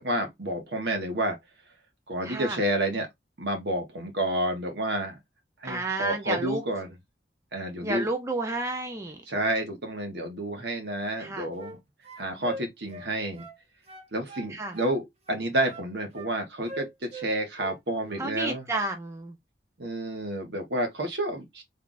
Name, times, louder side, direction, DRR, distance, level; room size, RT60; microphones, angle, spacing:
voice 1, 0.0-1.4 2.1-3.1 3.4-5.2 5.6-6.9 7.5-8.1 9.3-11.8 12.2-13.5 14.1-18.7 19.8-21.6, right 1 dB, 70° right, 1.4 m, -30 dB
voice 2, 2.2-2.6 5.6-6.6 7.8-9.2 11.2-11.5 14.5-14.8 18.2-19.4, right 2 dB, 15° right, 0.7 m, -31 dB
sound 1, 11.1-11.8 12.0-13.6 13.9-15.0 15.3-16.3 16.7-17.8 18.0-18.3, right 1 dB, 35° right, 1.1 m, -42 dB
3.4 x 2.4 x 4.0 m
head